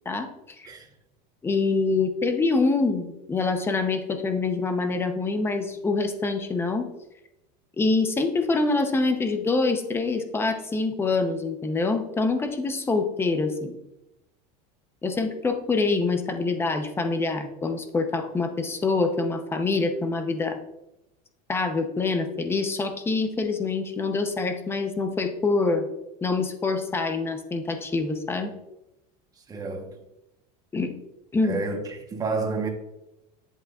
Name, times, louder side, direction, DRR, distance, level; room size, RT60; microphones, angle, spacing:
voice 1, 1.4-6.9 7.8-13.7 15.0-20.6 21.5-25.9 26.2-28.5 30.7-30.9 31.3-31.6, left 3 dB, 10° left, 0.8 m, -25 dB
voice 2, 29.5-30.0 31.4-32.7, right 4 dB, 20° right, 1.1 m, -30 dB
10.0 x 8.0 x 2.4 m
supercardioid pair, 150°, 20 cm